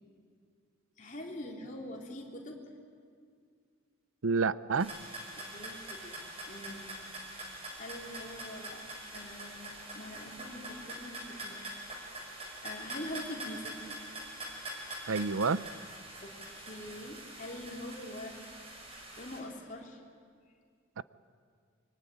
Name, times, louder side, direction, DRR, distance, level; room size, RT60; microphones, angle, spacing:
voice 1, 1.0-2.6 5.4-6.1 6.5-7.0 7.8-8.8 9.1-11.9 12.6-13.8 16.2-18.4 19.2-20.0, left 1 dB, 40° left, 0 dB, 3.5 m, -44 dB
voice 2, 4.2-4.9 15.1-15.6 21.0-21.1, right 4 dB, 85° right, 16 dB, 0.6 m, -29 dB
sound 1, 4.8-19.4, right 1 dB, 30° right, 4.7 m, -44 dB
25.0 x 23.5 x 9.4 m, 2.2 s
head